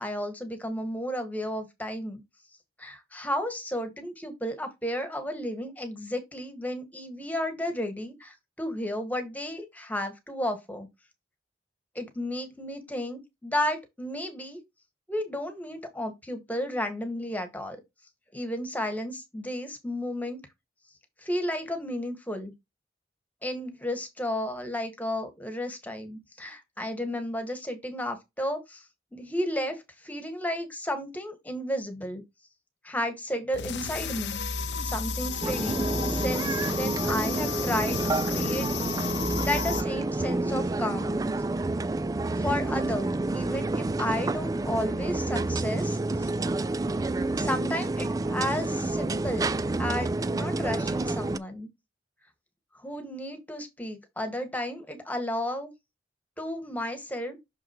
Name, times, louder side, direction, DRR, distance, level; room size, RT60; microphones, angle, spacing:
voice 1, 0.0-2.2 2.8-10.9 11.9-14.6 15.1-17.8 18.3-20.4 21.2-22.5 23.4-28.8 29.1-32.2 32.8-34.4 34.8-41.2 42.3-46.3 47.4-49.5 49.8-51.7 52.7-55.7 56.4-57.4, left 1 dB, 10° left, 1.5 m, -33 dB
sound 1, 33.5-39.8, left 6 dB, 75° left, 0.8 m, -33 dB
sound 2, 35.4-51.4, right 2 dB, 20° right, 0.3 m, -29 dB
6.4 x 5.8 x 2.9 m
head